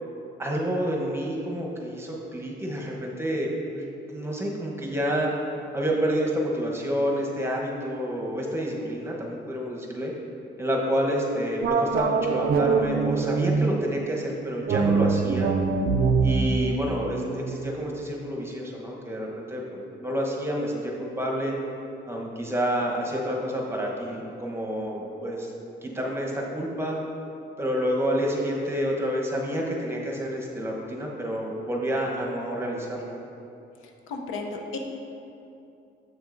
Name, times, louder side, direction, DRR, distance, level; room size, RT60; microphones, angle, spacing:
voice 1, 0.4-3.5 3.7-5.3 5.7-10.1 10.6-15.5 16.2-21.6 22.1-25.5 25.8-27.0 27.6-33.2, equal, 10° right, -2 dB, 1.0 m, -29 dB
sound 1, 11.6-13.9 14.7-18.0, right 5 dB, 50° right, 0.4 m, -24 dB
voice 2, 34.1-34.8, left 3 dB, 85° left, 2 dB, 0.7 m, -33 dB
7.3 x 6.0 x 2.6 m, 2.8 s
cardioid pair, 90°, 20 cm